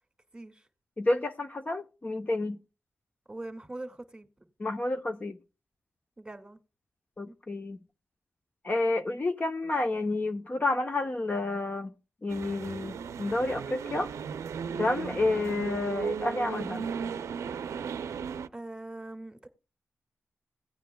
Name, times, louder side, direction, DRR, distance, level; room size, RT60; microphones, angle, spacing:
voice 1, 0.3-0.7 3.3-4.3 6.2-6.6 7.3-7.4 18.5-19.5, right 2 dB, 15° right, 2.0 m, -42 dB
voice 2, 1.0-2.6 4.6-5.4 7.2-7.8 8.6-11.9 12.2-14.1 14.8-16.9, left 2 dB, 35° left, 0.8 m, -30 dB
sound 1, 12.3-18.5, right 6 dB, 85° right, 0.5 m, -36 dB
17.0 x 9.1 x 2.3 m
cardioid pair, 70°, 5 cm